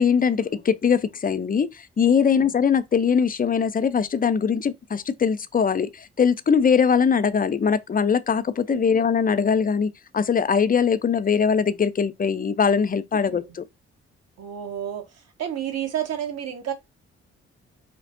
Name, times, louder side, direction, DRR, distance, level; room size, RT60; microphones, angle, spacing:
voice 1, 0.0-1.7 2.0-13.6, left 6 dB, 30° left, 0.5 m, -21 dB
voice 2, 14.4-15.1 15.4-16.7, right 10 dB, 55° right, 1.2 m, -31 dB
5.1 x 3.2 x 2.6 m
hypercardioid pair, 45°, 31 cm